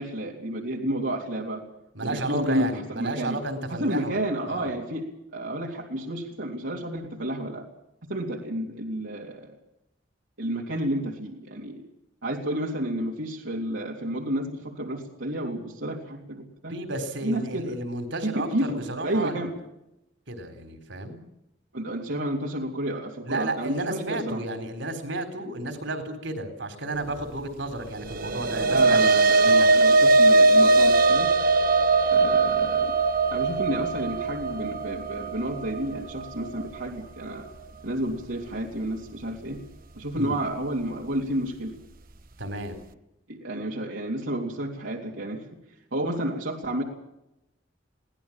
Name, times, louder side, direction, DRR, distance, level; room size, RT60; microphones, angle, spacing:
voice 1, 0.0-1.6 2.0-3.4 3.7-5.1 5.3-7.6 8.0-9.5 10.4-11.8 12.2-16.7 17.2-17.8 18.2-19.5 21.7-24.4 28.7-31.3 32.1-32.9 33.3-37.4 37.8-39.6 39.9-41.7 43.3-45.4 45.9-46.8, right 1 dB, 85° right, -2 dB, 3.3 m, -30 dB
voice 2, 1.9-4.7 16.7-19.5 20.3-21.2 23.2-29.7 40.1-40.4 42.4-42.8, right 2 dB, 70° right, 8 dB, 4.1 m, -33 dB
sound 1, 28.1-36.6, right 3 dB, 50° right, 1.1 m, -20 dB
23.5 x 18.0 x 7.4 m, 0.86 s
head